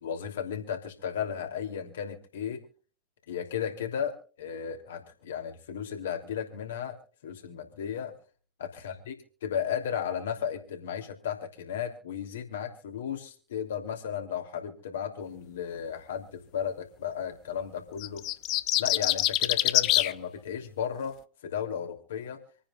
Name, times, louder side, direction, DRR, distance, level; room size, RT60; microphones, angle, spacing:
voice 1, 0.0-2.6 3.3-7.0 7.2-8.1 8.6-9.2 9.4-18.3 18.8-22.4, left 8 dB, 60° left, 4 dB, 3.0 m, -34 dB
sound 1, 18.0-20.1, left 17 dB, 40° left, 0.6 m, -25 dB
27.0 x 9.9 x 2.4 m, 0.38 s
figure-of-eight pair, 90°, 0 cm